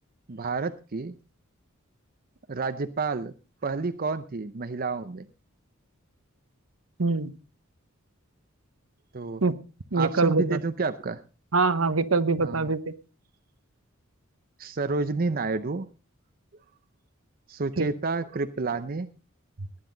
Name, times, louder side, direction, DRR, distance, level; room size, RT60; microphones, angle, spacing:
voice 1, 0.3-1.1 2.5-3.3 3.6-5.3 9.1-9.4 9.9-11.2 12.4-12.7 14.6-15.9 17.5-19.1, right 3 dB, 45° right, 10 dB, 0.7 m, -29 dB
voice 2, 7.0-7.3 9.4-9.5 9.9-10.6 11.5-12.9 17.8-17.9, right 3 dB, 70° right, 13 dB, 1.0 m, -24 dB
19.0 x 9.8 x 3.9 m, 0.33 s
head